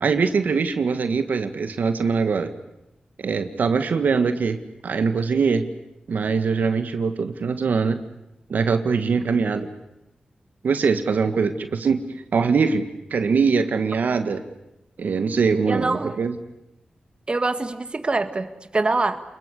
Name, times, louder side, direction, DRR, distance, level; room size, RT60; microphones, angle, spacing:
voice 1, 0.0-2.5 3.2-4.6 4.8-5.6 6.1-8.0 8.5-9.7 10.6-12.0 12.3-14.4 15.0-16.4, right 5 dB, 75° right, 8 dB, 1.8 m, -22 dB
voice 2, 15.7-16.2 17.3-18.5 18.7-19.2, right 3 dB, 35° right, 9 dB, 1.8 m, -24 dB
28.5 x 21.5 x 8.4 m, 0.88 s
cardioid pair, 70°, 3 cm